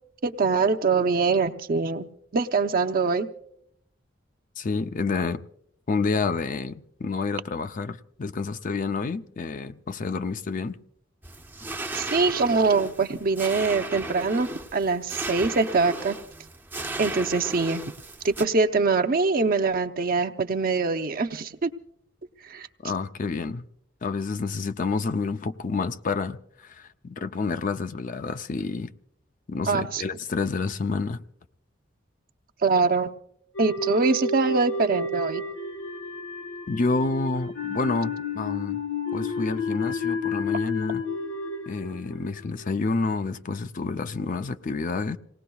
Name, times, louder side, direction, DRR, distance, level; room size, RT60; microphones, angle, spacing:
voice 1, 0.2-2.1 2.3-3.3 11.9-16.2 17.0-17.8 18.2-21.7 22.5-22.7 29.7-30.0 32.6-33.1 33.6-35.4, right 4 dB, 50° right, 0.7 m, -23 dB
voice 2, 4.6-5.4 5.9-10.8 22.8-23.7 24.0-28.9 29.5-31.2 36.7-38.8 39.1-41.0 41.7-45.2, left 4 dB, 45° left, 0.5 m, -29 dB
sound 1, 11.2-18.5, right 2 dB, 10° right, 0.6 m, -35 dB
sound 2, 33.5-42.8, left 3 dB, 85° left, 1.2 m, -31 dB
27.5 x 18.5 x 2.3 m
head